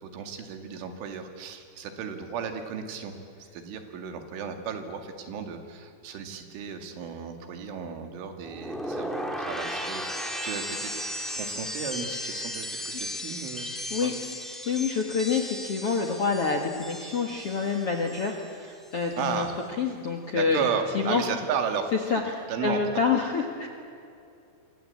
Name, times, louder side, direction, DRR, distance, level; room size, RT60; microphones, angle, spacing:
voice 1, 0.0-3.1 3.4-10.9 11.3-13.7 14.0-14.1 19.2-19.5 20.3-21.9 22.5-22.8, right 7 dB, 90° right, 6 dB, 4.7 m, -34 dB
sound 1, 8.4-18.5 18.8-19.3, equal, ahead, 2.0 m, -36 dB
voice 2, 14.6-19.5 19.8-20.7 20.9-21.2 22.1-23.7, left 5 dB, 60° left, 2 dB, 1.6 m, -27 dB
27.5 x 23.5 x 8.6 m, 2.5 s
omnidirectional pair, 5.4 m